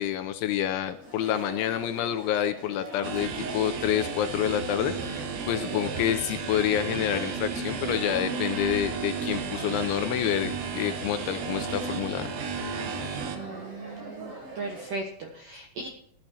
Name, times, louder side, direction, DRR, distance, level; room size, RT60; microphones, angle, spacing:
voice 1, 0.0-12.3, left 11 dB, 85° left, 9 dB, 2.8 m, -28 dB
Chatter, 0.9-15.0, right 1 dB, 40° right, 6.4 m, -42 dB
sound 1, 3.0-13.4, right 6 dB, 90° right, 1.7 m, -33 dB
voice 2, 13.3-15.9, right 2 dB, 75° right, 2 dB, 2.0 m, -37 dB
19.5 x 12.0 x 2.9 m, 0.67 s
omnidirectional pair, 5.9 m